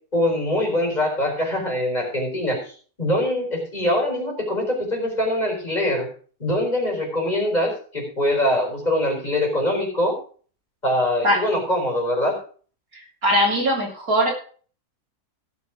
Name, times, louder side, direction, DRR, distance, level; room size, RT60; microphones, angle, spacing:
voice 1, 0.1-6.1 6.4-10.2 10.8-12.3, left 1 dB, 25° left, 0 dB, 4.7 m, -23 dB
voice 2, 12.9-14.3, equal, 60° right, -1 dB, 3.9 m, -21 dB
16.5 x 6.5 x 5.1 m, 0.42 s
omnidirectional pair, 1.7 m